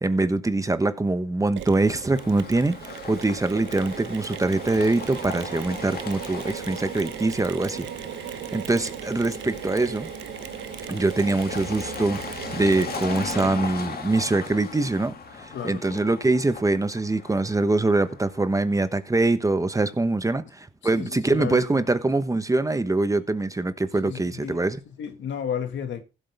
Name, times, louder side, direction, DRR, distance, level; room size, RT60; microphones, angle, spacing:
voice 1, 0.0-7.9 8.5-10.1 10.9-24.8, right 2 dB, 15° right, 1.1 m, -24 dB
Mechanisms, 1.6-13.9, right 11 dB, 70° right, 0.8 m, -37 dB
sound 1, 1.8-18.8, left 5 dB, 50° left, 2.4 m, -38 dB
voice 2, 15.5-16.0 20.9-21.8 24.0-24.6 25.0-26.0, left 8 dB, 70° left, 1.8 m, -32 dB
15.5 x 7.8 x 3.4 m
cardioid pair, 90°, 20 cm